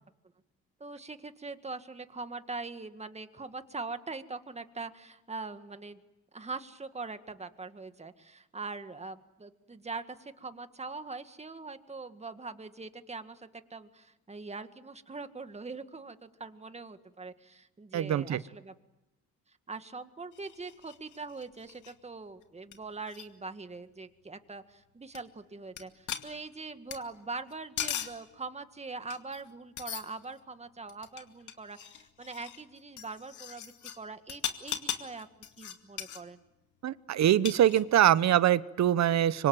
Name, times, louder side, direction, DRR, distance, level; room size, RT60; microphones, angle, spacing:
voice 1, 0.8-6.0 6.3-18.7 19.7-35.3 35.6-36.4, right 3 dB, 20° right, 9 dB, 1.9 m, -42 dB
voice 2, 17.9-18.4 36.8-39.5, right 11 dB, 65° right, 17 dB, 1.0 m, -24 dB
sound 1, 20.3-21.9 22.4-22.5 22.7-22.8 23.0-23.2 25.1-25.2 25.8-25.9 26.1-27.0 27.5-28.2 29.1-29.5 29.8-30.4 30.9-34.0 34.3-36.2 37.3-38.1, left 9 dB, 75° left, 2.4 m, -39 dB
26.0 x 24.5 x 9.2 m, 0.97 s
cardioid pair, 90°, 30 cm